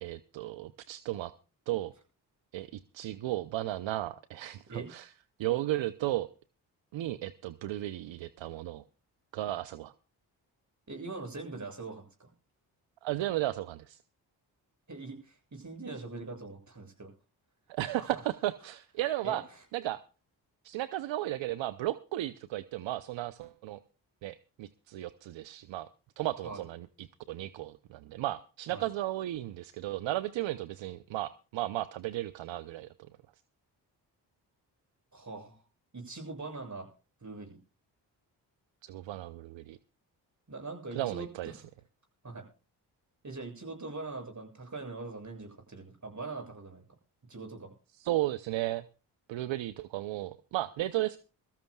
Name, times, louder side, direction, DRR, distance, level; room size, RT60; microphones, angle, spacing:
voice 1, 0.0-1.3 1.7-1.9 2.5-5.1 5.4-6.3 6.9-8.8 9.3-9.9 13.0-14.0 17.7-19.4 19.7-20.0 20.6-23.8 24.2-25.9 26.2-32.9 38.8-39.8 40.9-41.5 48.0-48.8 49.3-51.2, right 15 dB, 70° right, 14 dB, 0.7 m, -34 dB
voice 2, 10.9-12.3 14.9-17.1 18.0-18.2 19.2-19.6 26.4-26.6 28.7-28.8 35.1-35.6 35.9-36.9 37.2-37.6 40.5-41.3 41.6-41.7 42.2-42.5 43.2-46.8 47.3-47.7, right 3 dB, 40° right, 4 dB, 7.6 m, -42 dB
22.5 x 14.0 x 2.3 m, 0.34 s
supercardioid pair, 45°, 46 cm